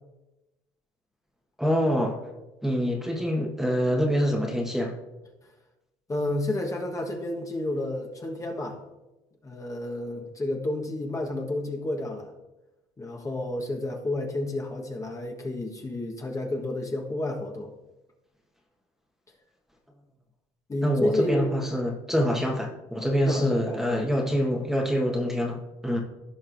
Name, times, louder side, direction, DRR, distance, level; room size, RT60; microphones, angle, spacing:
voice 1, 1.6-2.2 2.6-4.9 20.8-26.0, equal, 5° right, 1 dB, 1.4 m, -25 dB
voice 2, 6.1-8.8 9.4-12.3 13.0-17.7 20.7-21.5 23.2-24.1, left 1 dB, 25° left, 1 dB, 1.4 m, -30 dB
15.5 x 5.4 x 2.6 m, 1.0 s
supercardioid pair, 90°, 14 cm